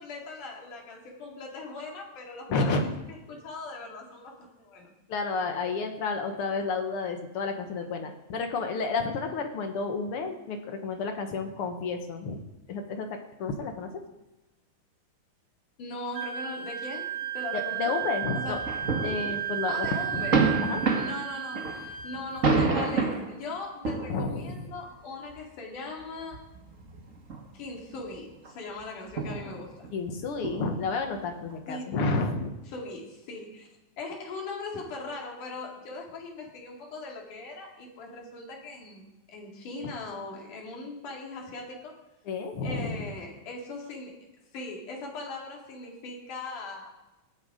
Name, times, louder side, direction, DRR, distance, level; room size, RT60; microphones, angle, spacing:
voice 1, 0.0-2.8 3.3-4.9 15.8-17.1 17.3-18.0 18.4-18.6 19.7-20.5 20.9-26.4 27.5-29.9 31.7-31.9 32.7-33.7 34.0-42.0 42.6-44.1 44.5-46.9, left 3 dB, 75° left, -1 dB, 4.0 m, -40 dB
voice 2, 2.5-2.9 5.1-12.4 12.7-14.0 17.5-18.6 19.0-20.3 20.6-20.8 24.1-24.7 29.9-32.5 39.8-39.9 42.2-43.1, left 4 dB, 60° left, 5 dB, 1.7 m, -31 dB
Wind instrument woodwind instrument, 16.1-22.4, right 10 dB, 70° right, 4.6 m, -33 dB
sound 1, 18.4-19.5 19.9-23.3 23.8-24.4 25.3-25.4 26.2-27.4 27.8-28.1 28.4-28.5 29.1-31.5, right 4 dB, 50° right, 0.9 m, -29 dB
18.5 x 7.3 x 5.0 m, 1.0 s
omnidirectional pair, 3.7 m